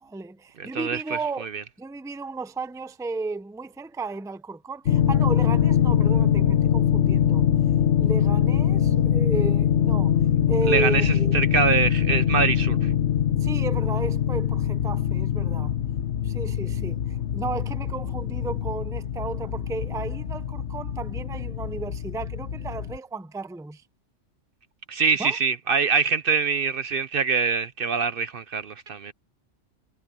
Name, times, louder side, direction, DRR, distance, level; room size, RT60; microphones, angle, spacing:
voice 1, 0.0-1.5 1.8-7.5 8.0-10.2 10.5-11.4 13.4-15.7 16.2-23.8 25.2-25.4, right 3 dB, 5° right, 0.5 m, -33 dB
voice 2, 0.6-1.6 10.7-12.9 24.9-29.1, right 5 dB, 55° right, 0.8 m, -24 dB
sound 1, 4.9-23.0, left 9 dB, 70° left, 1.4 m, -23 dB
omnidirectional pair, 1.3 m